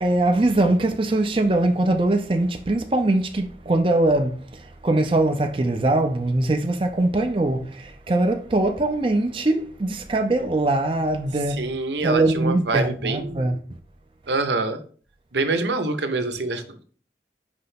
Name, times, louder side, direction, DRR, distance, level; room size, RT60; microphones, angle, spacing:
voice 1, 0.0-11.6 12.0-13.6, right 2 dB, 30° right, 0.5 m, -22 dB
voice 2, 11.5-13.5 14.3-14.8 15.3-16.8, right 3 dB, 80° right, 0.8 m, -25 dB
5.2 x 3.3 x 5.6 m
head